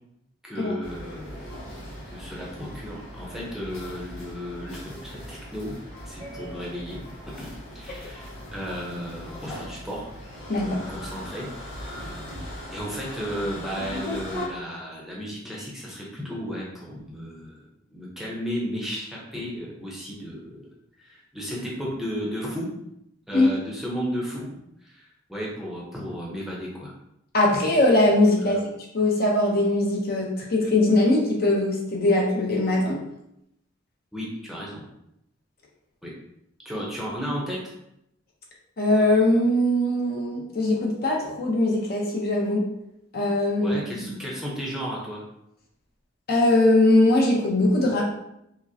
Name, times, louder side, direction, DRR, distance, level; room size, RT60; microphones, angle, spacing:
voice 1, 0.4-1.5 2.1-5.7 6.1-7.0 7.2-10.1 10.6-11.5 12.3-17.6 17.9-20.6 21.0-22.7 23.3-26.9 28.4-28.6 34.1-34.8 36.0-36.1 36.6-37.6 43.6-45.2, equal, ahead, -5 dB, 0.7 m, -34 dB
sound 1, 0.8-14.5, equal, 80° left, 1.4 m, -39 dB
voice 2, 27.3-28.6 28.9-33.0 38.8-42.6 43.1-44.1 46.3-48.0, left 1 dB, 50° left, -2 dB, 0.7 m, -21 dB
4.9 x 2.1 x 2.7 m, 0.80 s
head